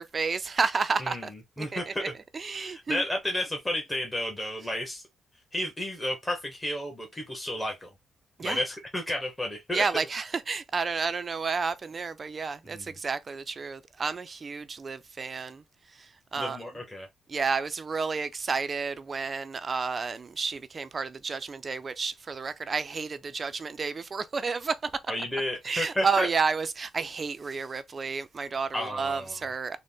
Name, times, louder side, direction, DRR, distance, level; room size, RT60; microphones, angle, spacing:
voice 1, 0.0-1.3 1.6-1.9 2.3-3.0 8.4-8.6 9.7-15.6 16.3-16.6 17.3-24.9 25.6-29.8, right 5 dB, 35° right, 0.4 m, -31 dB
voice 2, 1.0-2.0 2.5-5.0 5.5-7.9 8.4-9.8 12.6-12.9 16.4-17.1 25.1-26.3 28.7-29.4, left 1 dB, 10° left, 1.0 m, -32 dB
3.9 x 2.1 x 3.5 m
cardioid pair, 105°, 0 cm